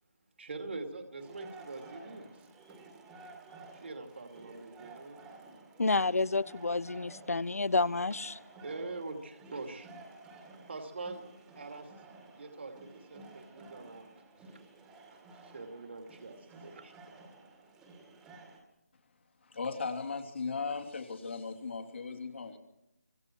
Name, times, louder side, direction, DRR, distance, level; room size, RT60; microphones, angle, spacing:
voice 1, 0.4-2.3 2.7-2.8 3.7-5.2 8.6-9.9 10.2-11.3 11.5-11.9 12.4-14.1 14.4-14.6 15.1-17.2, right 3 dB, 50° right, 2.7 m, -44 dB
sound 1, 1.2-18.6, right 3 dB, 10° right, 2.2 m, -53 dB
voice 2, 5.8-8.4, left 3 dB, 70° left, 0.8 m, -29 dB
voice 3, 19.4-22.6, left 4 dB, 50° left, 3.2 m, -37 dB
28.5 x 25.5 x 4.6 m
figure-of-eight pair, 165°, 8 cm